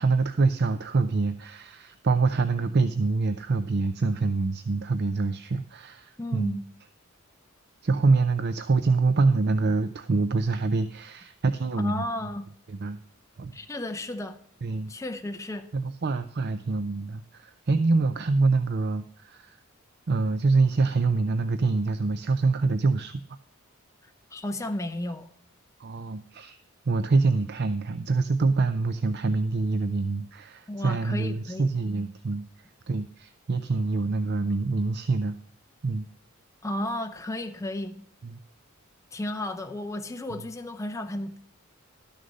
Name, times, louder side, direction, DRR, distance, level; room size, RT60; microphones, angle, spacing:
voice 1, 0.0-6.6 7.8-12.0 12.7-13.0 13.4-13.5 14.6-14.9 15.7-19.6 20.1-23.1 25.8-26.6 26.9-32.4 32.9-35.4 35.8-36.1 38.2-38.4, right 3 dB, 50° right, 0.5 m, -25 dB
voice 2, 6.2-6.6 11.8-12.5 13.5-14.4 14.9-15.7 24.3-25.3 30.7-31.7 36.6-37.9 39.1-41.4, left 1 dB, 15° left, 0.7 m, -33 dB
12.5 x 6.5 x 5.3 m
head